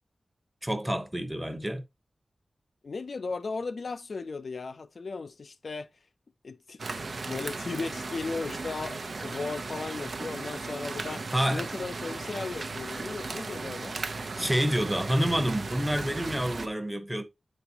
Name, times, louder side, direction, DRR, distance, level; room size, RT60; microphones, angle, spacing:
voice 1, 0.6-1.8 11.3-11.6 14.4-17.2, equal, 10° right, 0.9 m, -28 dB
voice 2, 2.8-5.9 6.4-7.0 7.3-14.0, left 4 dB, 70° left, 0.4 m, -36 dB
sound 1, 6.8-16.7, right 3 dB, 65° right, 0.7 m, -36 dB
9.2 x 4.1 x 2.8 m
wide cardioid pair, 70°, 0 cm